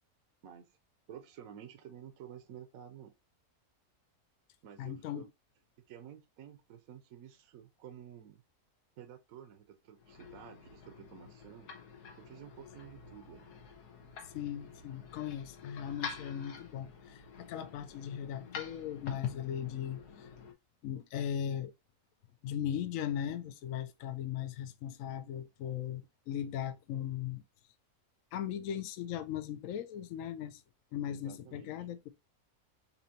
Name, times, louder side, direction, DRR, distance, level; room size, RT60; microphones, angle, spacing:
voice 1, 1.1-3.1 4.6-5.3 5.9-8.4 9.0-11.7 12.2-13.5 31.1-31.7, right 9 dB, 65° right, 1.1 m, -51 dB
voice 2, 4.8-5.2 14.3-20.3 20.8-21.7 22.4-27.4 28.3-30.6 30.9-32.1, left 10 dB, 65° left, 0.9 m, -38 dB
sound 1, 9.9-20.5, left 6 dB, 90° left, 1.5 m, -47 dB
6.8 x 2.8 x 2.7 m
omnidirectional pair, 1.6 m